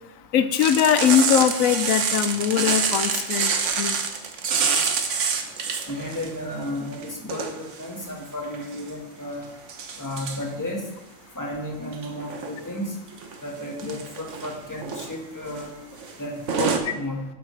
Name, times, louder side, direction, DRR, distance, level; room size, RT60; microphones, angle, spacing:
voice 1, 0.3-3.5 3.8-4.0, left 9 dB, 85° left, 11 dB, 1.0 m, -21 dB
sound 1, 0.6-6.3 6.6-7.8 8.4-8.9 9.7-10.4 11.9-12.6 13.1-13.3 13.7-14.5 14.8-15.1 15.5-15.6 15.9-16.1 16.5-16.8, right 6 dB, 65° right, 1.2 m, -26 dB
voice 2, 5.9-9.4 10.0-10.8 11.3-13.0 13.4-15.7 16.2-17.2, left 1 dB, 15° left, -1 dB, 1.5 m, -33 dB
12.0 x 8.0 x 3.3 m, 0.98 s
omnidirectional pair, 1.4 m